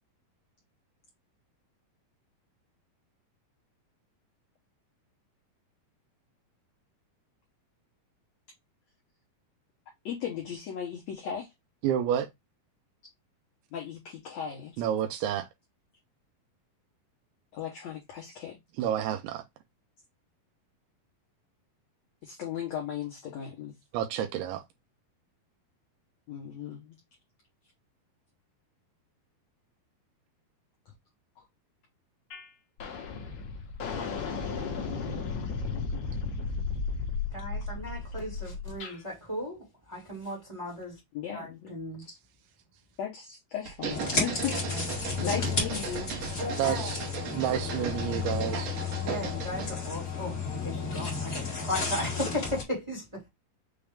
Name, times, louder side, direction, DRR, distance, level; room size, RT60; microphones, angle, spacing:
voice 1, 10.0-11.5 13.7-14.7 17.5-18.6 22.2-23.7 26.3-27.0 41.1-41.7 42.1-42.2 43.0-46.1, left 8 dB, 75° left, 1.6 m, -36 dB
voice 2, 11.8-12.3 14.8-15.5 18.8-19.4 23.9-24.6 46.6-47.0 47.3-48.7, right 10 dB, 85° right, 2.6 m, -29 dB
sound 1, 32.3-32.5 32.8-39.0, left 4 dB, 60° left, 1.9 m, -34 dB
voice 3, 37.3-41.0 41.3-42.0 44.4-45.2 46.4-46.9 49.0-53.3, left 1 dB, 25° right, 0.7 m, -36 dB
sound 2, 43.7-49.8, right 7 dB, 65° right, 2.5 m, -37 dB
sound 3, 43.9-52.6, left 5 dB, 40° left, 1.3 m, -33 dB
6.2 x 2.4 x 3.4 m
omnidirectional pair, 4.4 m